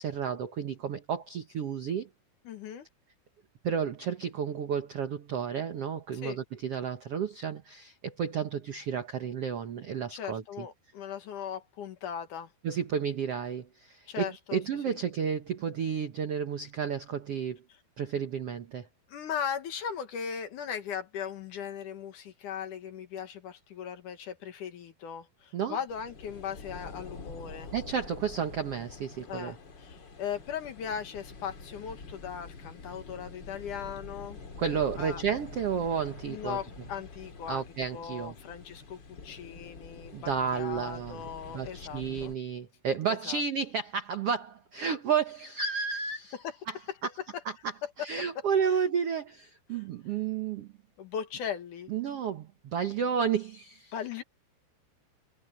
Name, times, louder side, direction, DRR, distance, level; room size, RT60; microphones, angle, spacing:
voice 1, 0.0-2.1 3.6-10.7 12.6-17.6 18.0-18.9 25.5-25.8 27.7-29.5 34.6-36.6 37.5-38.3 40.1-41.2 41.5-46.4 46.7-47.1 47.4-47.5 48.0-50.7 51.9-53.9, right 7 dB, 90° right, 1.3 m, -32 dB
voice 2, 2.5-2.9 6.2-6.4 10.1-12.5 14.1-14.6 14.9-15.0 19.1-27.7 29.3-34.4 35.0-35.2 36.3-37.6 37.9-42.3 43.1-43.4 46.3-46.6 48.7-48.8 49.7-49.8 51.0-51.9 53.9-54.2, left 8 dB, 60° left, 2.5 m, -38 dB
sound 1, 25.9-42.4, left 4 dB, 35° left, 2.4 m, -46 dB
omnidirectional pair, 4.7 m